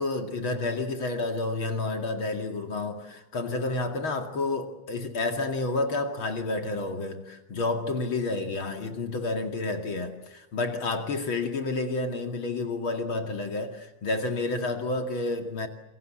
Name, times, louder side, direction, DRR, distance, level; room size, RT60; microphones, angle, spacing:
voice 1, 0.0-15.7, left 2 dB, 45° left, 2.9 m, -30 dB
28.5 x 23.0 x 7.6 m
omnidirectional pair, 3.4 m